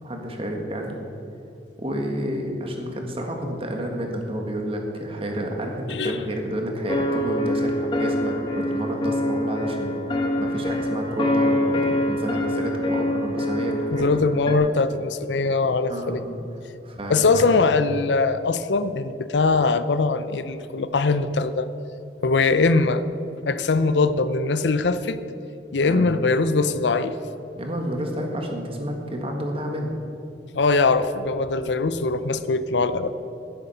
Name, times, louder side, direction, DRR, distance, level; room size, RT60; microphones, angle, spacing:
voice 1, 0.0-1.0 1.8-14.2 15.9-16.3 16.8-17.6 25.8-26.1 27.5-30.0, equal, 35° right, 2 dB, 1.7 m, -30 dB
voice 2, 5.9-6.2 13.9-16.2 17.1-21.7 22.2-23.0 23.5-25.2 25.7-27.1 30.5-33.1, left 3 dB, 85° left, 12 dB, 0.6 m, -21 dB
sound 1, 6.9-14.5, left 1 dB, 30° left, 1.4 m, -25 dB
11.0 x 10.5 x 5.6 m, 2.9 s
head